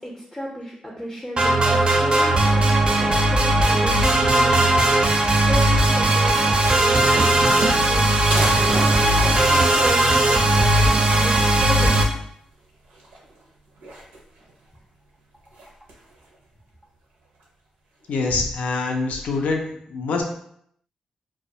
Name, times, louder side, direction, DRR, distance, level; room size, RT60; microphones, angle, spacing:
voice 1, 0.0-12.1, equal, 15° left, -3 dB, 0.5 m, -34 dB
sound 1, 1.4-12.0, right 1 dB, 40° right, 0.4 m, -18 dB
sound 2, 6.9-8.0 8.3-10.9 11.3-11.4 11.7-11.8 12.9-13.4 13.8-14.5 15.5-16.1, right 2 dB, 85° right, 0.5 m, -31 dB
voice 2, 18.1-19.6 19.9-20.2, left 3 dB, 75° left, 2 dB, 0.4 m, -24 dB
2.2 x 2.1 x 2.7 m, 0.69 s
supercardioid pair, 50°, 2 cm